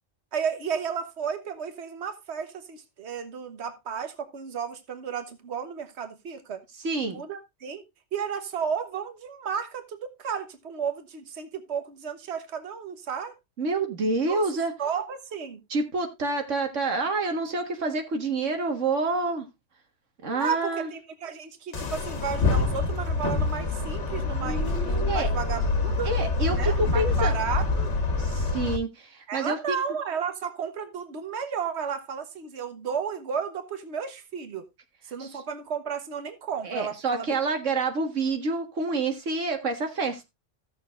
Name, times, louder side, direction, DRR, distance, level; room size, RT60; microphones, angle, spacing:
voice 1, 0.3-6.6 7.1-7.8 8.1-13.3 14.3-14.4 14.8-15.6 20.3-26.1 26.5-27.9 29.3-34.6 35.0-37.4, right 7 dB, 65° right, 1.4 m, -33 dB
voice 2, 6.8-7.2 13.6-14.7 15.7-19.5 20.2-20.9 25.1-25.3 26.0-27.4 28.2-29.8 36.6-40.3, right 3 dB, 85° right, 1.9 m, -28 dB
sound 1, 21.7-28.8, left 3 dB, 70° left, 1.5 m, -26 dB
15.5 x 6.9 x 2.5 m
omnidirectional pair, 1.2 m